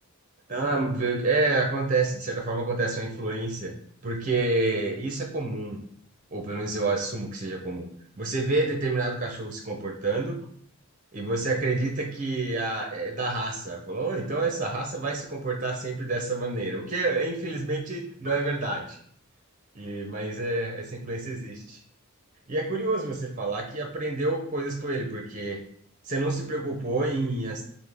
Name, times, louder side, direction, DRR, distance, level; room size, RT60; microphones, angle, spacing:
voice 1, 0.5-3.7 4.0-5.8 6.3-7.9 8.2-10.4 11.1-19.0 19.7-21.8 22.5-25.6 26.1-27.6, right 2 dB, 35° right, 2 dB, 0.6 m, -28 dB
5.7 x 2.1 x 3.3 m, 0.62 s
head